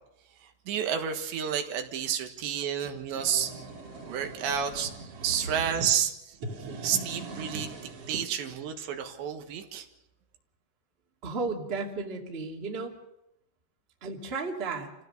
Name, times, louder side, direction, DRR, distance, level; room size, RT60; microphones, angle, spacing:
voice 1, 0.4-3.5 4.0-4.9 5.2-6.4 6.8-7.7 8.1-9.9, right 8 dB, 80° right, 5 dB, 3.7 m, -30 dB
sound 1, 2.8-5.9 6.3-8.2, right 3 dB, 40° right, 2.9 m, -40 dB
sound 2, 3.3-6.2, left 1 dB, 70° left, 6.9 m, -53 dB
voice 2, 11.2-13.0 14.0-14.9, right 3 dB, 20° right, 0 dB, 1.9 m, -34 dB
28.0 x 16.0 x 6.8 m, 0.88 s
omnidirectional pair, 5.1 m